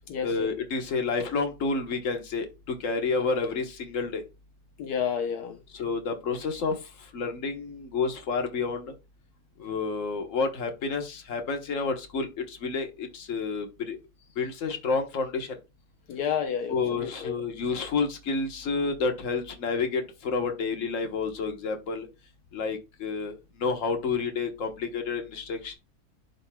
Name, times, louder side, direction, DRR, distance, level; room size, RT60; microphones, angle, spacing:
voice 1, 0.2-4.2 5.7-6.8 7.1-8.9 9.6-14.0 14.4-15.5 16.7-22.1 22.5-25.8, left 4 dB, 55° left, 1.5 m, -29 dB
voice 2, 4.8-5.6 16.1-17.4, left 7 dB, 80° left, 1.4 m, -30 dB
12.0 x 4.0 x 2.2 m
omnidirectional pair, 1.6 m